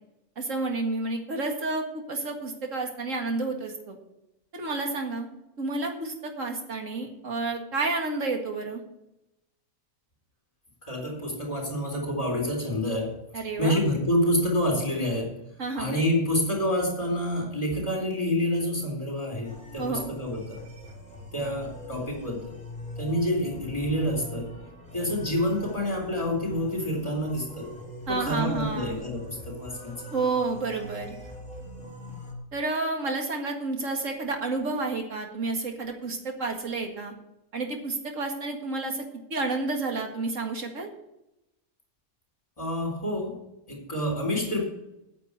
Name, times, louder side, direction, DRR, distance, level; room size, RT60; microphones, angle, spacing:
voice 1, 0.4-4.0 4.5-5.3 5.6-8.8 13.3-13.8 15.6-15.9 19.8-20.1 28.1-29.0 30.1-31.2 32.5-37.1 37.5-39.0 39.3-40.9, right 3 dB, 60° right, 2 dB, 2.3 m, -30 dB
voice 2, 10.9-13.1 13.6-15.3 15.8-20.6 21.3-22.5 23.0-24.5 24.9-27.7 28.1-29.9 42.6-43.4 43.7-44.6, left 1 dB, 25° left, 1 dB, 3.8 m, -28 dB
sound 1, 19.4-32.3, equal, 5° left, 2.8 m, -42 dB
9.3 x 7.4 x 8.2 m, 0.88 s
omnidirectional pair, 1.5 m